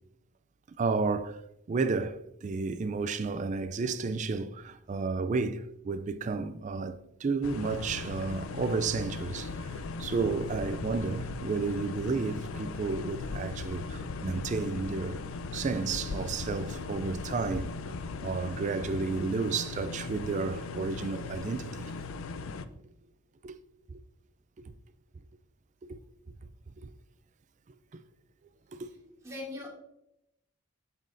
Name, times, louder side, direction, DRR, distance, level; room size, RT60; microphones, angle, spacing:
voice 1, 0.7-1.4 1.7-9.7 10.0-15.2 15.5-17.7 18.2-21.9 23.4-23.6 23.9-24.0 25.8-26.0 26.8-26.9 28.7-28.9, right 4 dB, 35° right, 0.3 m, -32 dB
sound 1, 7.4-22.7, left 3 dB, 70° left, 0.5 m, -38 dB
voice 2, 29.2-29.7, left 2 dB, 15° right, 2.3 m, -40 dB
7.5 x 7.4 x 2.6 m
head